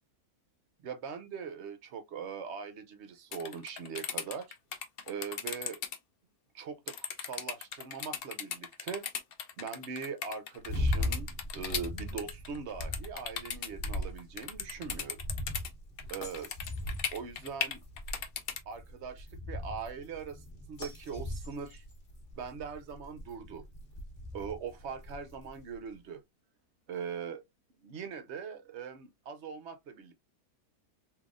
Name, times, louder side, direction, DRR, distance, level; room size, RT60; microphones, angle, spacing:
voice 1, 0.8-4.5 5.1-5.8 6.5-9.1 9.6-15.2 16.1-16.5 17.1-17.8 18.7-21.8 22.3-23.6 24.3-26.2 26.9-27.4 27.8-30.1, right 6 dB, 60° right, 0.7 m, -41 dB
sound 1, 3.3-6.0 6.9-15.7 16.0-18.6, left 7 dB, 75° left, 0.5 m, -37 dB
sound 2, 10.6-25.8, left 1 dB, 40° left, 1.3 m, -39 dB
3.7 x 2.7 x 2.4 m
omnidirectional pair, 1.7 m